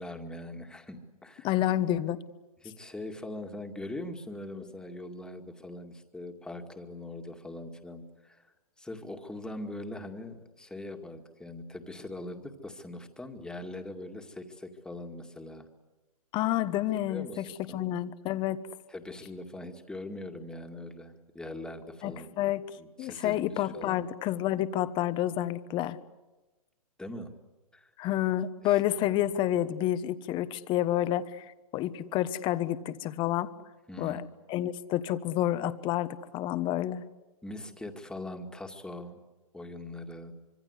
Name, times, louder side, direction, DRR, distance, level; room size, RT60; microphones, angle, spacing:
voice 1, 0.0-1.5 2.6-15.7 17.1-17.8 18.9-22.4 22.8-24.1 27.0-27.3 27.7-27.9 28.6-29.2 33.9-34.3 37.4-39.2 39.5-40.3, left 1 dB, 5° left, 4 dB, 2.1 m, -42 dB
voice 2, 1.4-2.2 16.3-17.4 17.7-18.6 22.0-22.6 23.0-26.0 28.0-31.5 31.7-33.5 34.0-37.0, left 13 dB, 25° left, 13 dB, 1.2 m, -29 dB
25.5 x 24.0 x 8.2 m, 1.1 s
hypercardioid pair, 135°, 19 cm